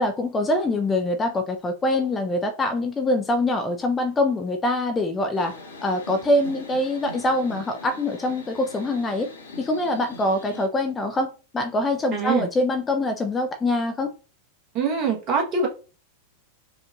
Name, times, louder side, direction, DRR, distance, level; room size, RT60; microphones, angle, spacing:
voice 1, 0.0-5.5 5.8-9.3 9.6-14.1, left 1 dB, 15° left, 0.5 m, -24 dB
sound 1, 5.3-10.7, left 2 dB, 75° left, 1.1 m, -41 dB
voice 2, 12.1-12.5 14.7-15.7, right 5 dB, 35° right, 1.3 m, -23 dB
5.1 x 2.5 x 2.5 m
figure-of-eight pair, 90°, 0 cm